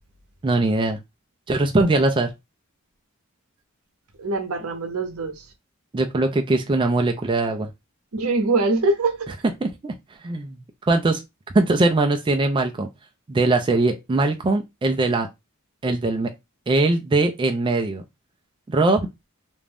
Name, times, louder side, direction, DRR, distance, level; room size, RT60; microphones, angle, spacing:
voice 1, 0.4-1.0 1.5-2.3 5.9-7.7 9.6-9.9 10.2-10.6 10.9-11.2 11.5-12.9 13.3-15.3 15.8-16.3 16.7-18.0 18.7-19.1, right 2 dB, 25° right, 0.3 m, -21 dB
voice 2, 4.2-5.4 8.1-9.3, right 3 dB, 80° right, 0.7 m, -23 dB
2.5 x 2.2 x 3.3 m
head